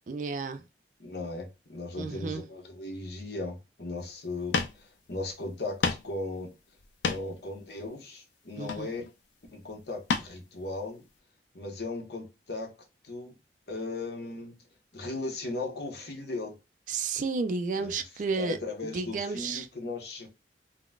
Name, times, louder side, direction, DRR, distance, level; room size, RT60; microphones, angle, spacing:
voice 1, 0.1-0.6 2.0-2.4 8.6-8.9 16.9-18.6 18.8-19.7, right 4 dB, 45° right, 0.3 m, -32 dB
voice 2, 1.0-5.8 6.0-6.5 7.0-9.0 9.5-11.0 11.5-12.7 13.0-13.4 13.7-14.5 14.9-16.6 17.8-17.9 18.3-20.3, left 2 dB, 65° left, 1.0 m, -37 dB
sound 1, 4.2-4.3 4.5-4.8 5.2-5.3 5.8-6.1 6.8-7.4 8.6-9.1 10.1-10.3 10.8-10.9, left 4 dB, 90° left, 0.5 m, -30 dB
3.8 x 2.1 x 2.3 m
head